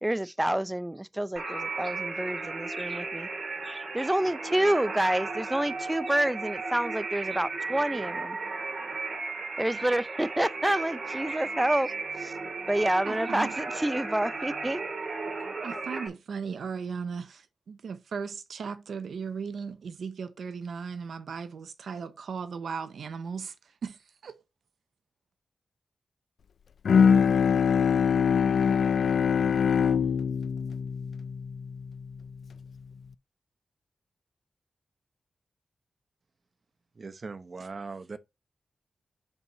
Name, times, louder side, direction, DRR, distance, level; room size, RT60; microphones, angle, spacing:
voice 1, 0.0-3.3 3.6-8.4 9.6-12.4 12.7-14.8, right 1 dB, 10° right, 0.5 m, -28 dB
sound 1, 1.4-16.1, right 3 dB, 60° right, 2.0 m, -35 dB
voice 2, 13.0-13.5 15.6-23.5 23.8-24.4, right 6 dB, 90° right, 0.7 m, -37 dB
Bowed string instrument, 26.8-32.3, left 6 dB, 80° left, 0.3 m, -24 dB
voice 3, 37.0-38.2, right 4 dB, 45° right, 0.8 m, -40 dB
5.4 x 4.7 x 5.5 m
wide cardioid pair, 130°, 0 cm